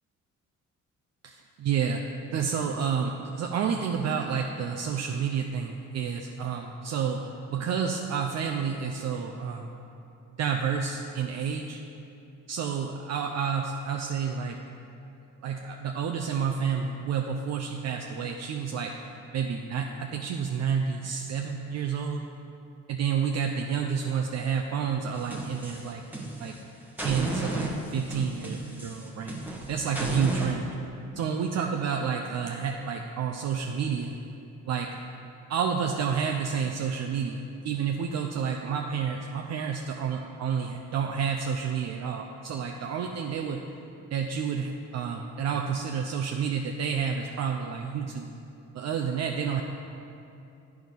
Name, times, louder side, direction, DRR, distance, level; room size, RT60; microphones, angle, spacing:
voice 1, 1.2-2.0 2.3-9.7 10.4-11.8 12.5-14.6 15.4-19.0 19.3-22.3 22.9-26.0 26.4-26.5 27.0-29.4 29.7-30.7 31.2-34.2 34.7-34.9 35.5-43.6 44.1-48.4 48.7-49.6, right 6 dB, 60° right, 3 dB, 0.5 m, -30 dB
sound 1, 25.1-26.6 27.0-30.5, right 1 dB, 5° right, 1.0 m, -34 dB
9.4 x 4.7 x 5.2 m, 2.7 s
cardioid pair, 90°, 30 cm